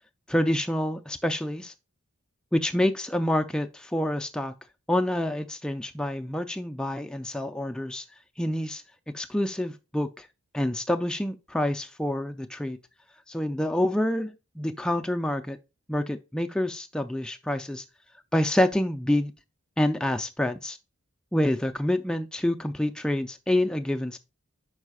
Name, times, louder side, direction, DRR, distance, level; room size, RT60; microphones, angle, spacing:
voice 1, 0.3-1.7 2.5-4.5 4.9-8.0 8.4-8.8 9.1-10.3 10.5-12.8 13.3-15.6 15.9-17.8 18.3-19.3 19.8-20.8 21.3-24.2, left 1 dB, 5° left, 0.3 m, -27 dB
5.4 x 4.9 x 4.7 m
head